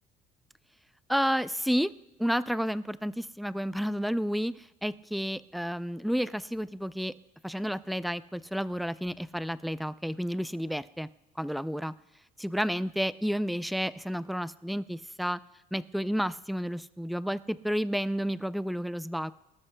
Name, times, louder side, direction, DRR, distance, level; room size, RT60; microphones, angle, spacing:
voice 1, 1.1-1.9 2.2-7.1 7.4-11.1 11.4-11.9 12.4-15.4 15.7-19.3, equal, ahead, 15 dB, 0.3 m, -31 dB
24.5 x 13.0 x 2.2 m, 1.0 s
cardioid pair, 110°, 17 cm